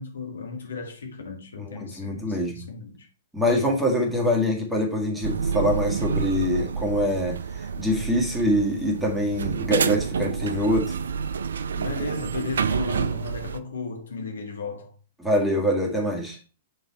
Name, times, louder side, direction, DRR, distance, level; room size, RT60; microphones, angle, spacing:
voice 1, 0.0-3.1 11.8-15.0, left 4 dB, 75° left, 1.7 m, -35 dB
voice 2, 2.0-2.6 3.3-10.9 15.2-16.4, equal, 5° right, 1.8 m, -24 dB
sound 1, 5.2-13.6, right 6 dB, 75° right, 0.4 m, -28 dB
6.6 x 4.0 x 4.2 m
figure-of-eight pair, 115°, 0 cm